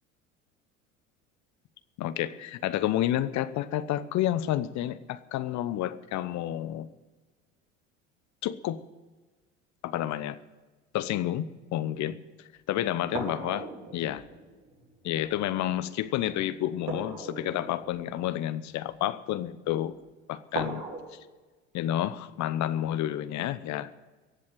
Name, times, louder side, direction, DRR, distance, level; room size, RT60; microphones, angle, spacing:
voice 1, 2.0-6.9 8.4-8.8 9.8-10.4 10.9-12.2 12.7-14.2 15.0-19.9 20.3-20.8 21.1-21.2 21.7-23.9, left 12 dB, 45° left, 15 dB, 0.9 m, -30 dB
sound 1, 13.1-15.3 16.8-19.1 20.5-21.0, right 3 dB, 60° right, 6.0 m, -39 dB
16.5 x 7.7 x 9.2 m, 1.3 s
hypercardioid pair, 70°, 38 cm